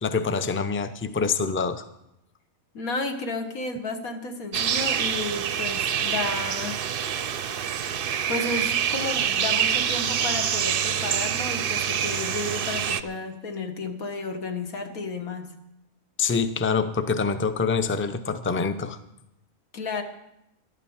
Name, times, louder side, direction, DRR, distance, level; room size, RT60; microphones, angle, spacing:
voice 1, 0.0-1.8 16.2-19.0, left 5 dB, 20° left, 10 dB, 0.3 m, -25 dB
voice 2, 2.7-6.8 8.3-15.5 19.7-20.0, left 3 dB, 75° left, 5 dB, 1.9 m, -32 dB
sound 1, 4.5-13.0, right 8 dB, 55° right, 0.6 m, -26 dB
12.5 x 11.5 x 7.2 m, 0.85 s
omnidirectional pair, 1.5 m